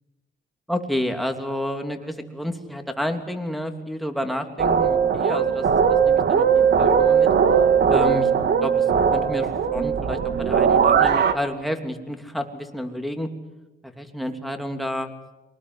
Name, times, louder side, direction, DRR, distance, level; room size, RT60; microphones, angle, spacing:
voice 1, 0.7-7.3 7.9-8.3 8.6-8.8 9.1-13.3 13.8-15.1, equal, ahead, 4 dB, 3.2 m, -30 dB
sound 1, 4.6-11.3, right 7 dB, 60° right, 2.1 m, -19 dB
24.0 x 19.5 x 9.6 m, 1.1 s
cardioid pair, 90°, 20 cm